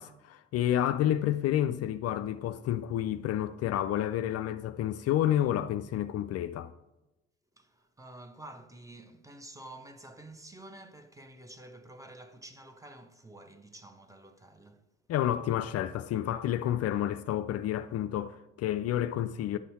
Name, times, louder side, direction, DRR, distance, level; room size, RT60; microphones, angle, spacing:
voice 1, 0.0-6.7 15.1-19.6, left 11 dB, 55° left, 0.4 m, -30 dB
voice 2, 7.6-14.9, right 1 dB, 10° right, 0.9 m, -50 dB
9.8 x 5.5 x 4.2 m
hypercardioid pair, 55°, 30 cm